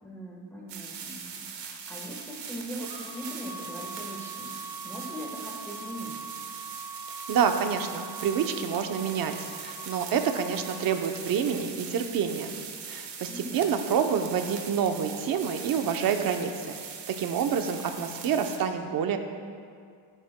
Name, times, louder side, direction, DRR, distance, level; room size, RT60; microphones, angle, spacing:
voice 1, 0.0-6.1 13.3-13.8, equal, 5° left, -3 dB, 1.3 m, -41 dB
sound 1, 0.7-18.6, right 6 dB, 75° right, 1.4 m, -41 dB
sound 2, 2.8-11.0, right 3 dB, 15° right, 1.6 m, -43 dB
voice 2, 7.3-12.5 12.9-16.8 17.1-19.2, right 7 dB, 50° right, 6 dB, 0.8 m, -28 dB
16.0 x 10.0 x 2.2 m, 2.2 s
cardioid pair, 165°, 43 cm